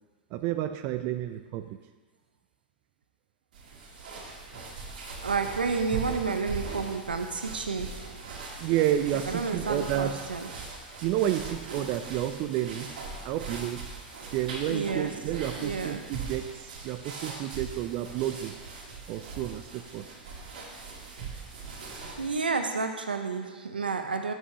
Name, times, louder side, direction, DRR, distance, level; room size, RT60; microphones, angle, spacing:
voice 1, 0.3-1.8 8.6-10.2 11.0-13.8 14.3-18.6 19.1-20.0, right 12 dB, 45° right, 9 dB, 0.5 m, -30 dB
sound 1, 3.5-22.5, right 4 dB, 65° right, 2.1 m, -40 dB
voice 2, 5.2-8.2 9.2-10.5 14.7-15.3 15.6-16.1 22.2-24.3, right 4 dB, 90° right, 7 dB, 0.7 m, -30 dB
7.5 x 5.5 x 5.6 m, 1.5 s
hypercardioid pair, 100°, 5 cm